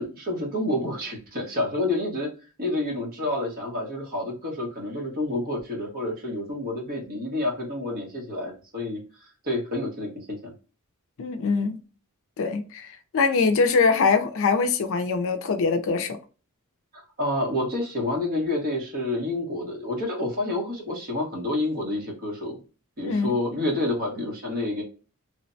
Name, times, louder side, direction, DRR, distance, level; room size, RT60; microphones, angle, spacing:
voice 1, 0.0-2.3 2.6-9.0 9.4-10.5 17.2-22.6 23.0-24.8, left 1 dB, 45° right, 1.1 m, -28 dB
voice 2, 11.2-11.8 12.4-12.9 13.1-16.2 23.0-23.3, left 4 dB, 65° left, 0.4 m, -23 dB
3.2 x 2.1 x 2.5 m
head